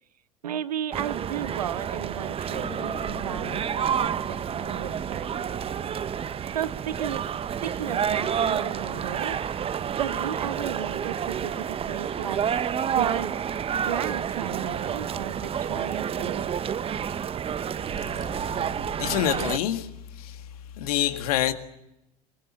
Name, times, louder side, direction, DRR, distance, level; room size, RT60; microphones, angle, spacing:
voice 1, 0.4-5.6 6.5-7.3 7.6-9.4 9.9-13.4 13.7-16.5, right 10 dB, 75° right, 1.0 m, -34 dB
sound 1, 0.9-19.6, right 8 dB, 30° right, 1.0 m, -29 dB
Piano, 2.5-10.6, left 4 dB, 25° left, 3.7 m, -47 dB
voice 2, 19.0-19.9 20.2-20.4 20.8-21.5, left 12 dB, 65° left, 1.9 m, -26 dB
23.0 x 23.0 x 7.4 m
figure-of-eight pair, 75°, 20 cm